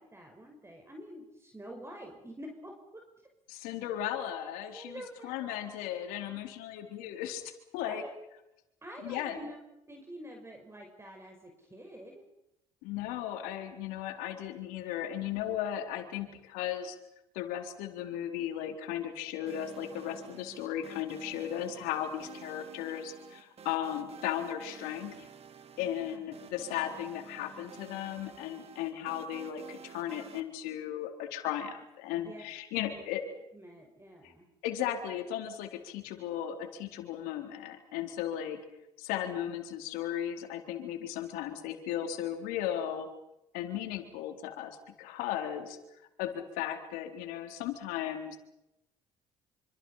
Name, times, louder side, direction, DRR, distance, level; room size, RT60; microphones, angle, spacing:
voice 1, 0.0-3.0 4.7-5.7 7.8-8.1 8.8-9.6 9.9-12.2 25.8-26.3 32.2-32.4 32.8-33.0 33.5-34.5, equal, 15° right, 2 dB, 5.8 m, -47 dB
voice 2, 3.5-7.4 7.7-8.0 9.0-9.4 12.8-17.0 17.3-25.3 25.8-33.2 34.2-34.3 34.6-38.6 39.0-43.1 43.5-45.8 46.2-48.4, left 11 dB, 80° left, 4 dB, 4.0 m, -36 dB
sound 1, 19.5-30.4, right 7 dB, 45° right, 2.9 m, -51 dB
27.5 x 25.5 x 5.8 m, 0.87 s
hypercardioid pair, 65°, 15 cm